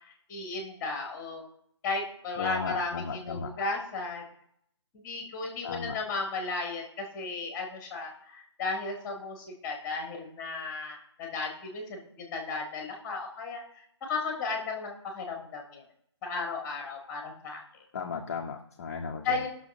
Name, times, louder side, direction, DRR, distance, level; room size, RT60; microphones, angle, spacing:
voice 1, 0.3-1.4 1.8-4.2 4.9-13.6 14.1-15.8 16.2-17.8 19.2-19.5, left 3 dB, 15° left, 2 dB, 1.5 m, -35 dB
voice 2, 2.4-3.5 5.6-6.0 17.9-19.4, left 5 dB, 35° left, 2 dB, 0.7 m, -35 dB
18.5 x 6.2 x 2.6 m, 0.72 s
figure-of-eight pair, 145°, 15 cm